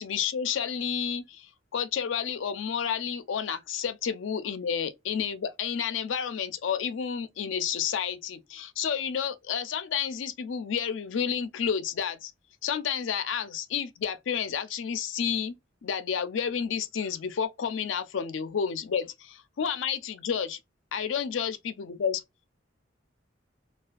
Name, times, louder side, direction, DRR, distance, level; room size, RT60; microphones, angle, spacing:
voice 1, 0.0-12.3 12.6-15.5 15.8-20.6 20.9-22.2, left 7 dB, 75° left, 0.4 m, -30 dB
2.5 x 2.3 x 2.3 m
head